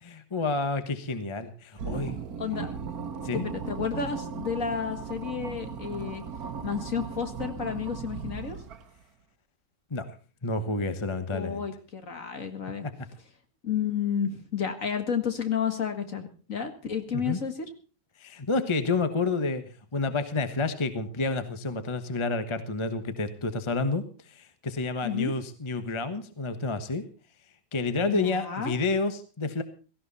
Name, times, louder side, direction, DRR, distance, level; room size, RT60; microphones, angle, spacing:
voice 1, 0.0-2.2 3.2-3.4 9.9-10.1 10.4-11.6 12.8-12.9 17.1-17.4 18.2-19.6 19.9-27.0 27.7-29.6, left 3 dB, 20° left, 10 dB, 1.1 m, -29 dB
sound 1, 1.8-9.0, right 6 dB, 65° right, 1.6 m, -37 dB
voice 2, 2.4-2.7 3.3-6.2 6.6-8.6 11.3-12.9 13.6-17.5 25.0-25.3 28.1-28.8, left 7 dB, 50° left, 7 dB, 2.2 m, -31 dB
17.0 x 15.5 x 4.1 m, 0.35 s
omnidirectional pair, 1.8 m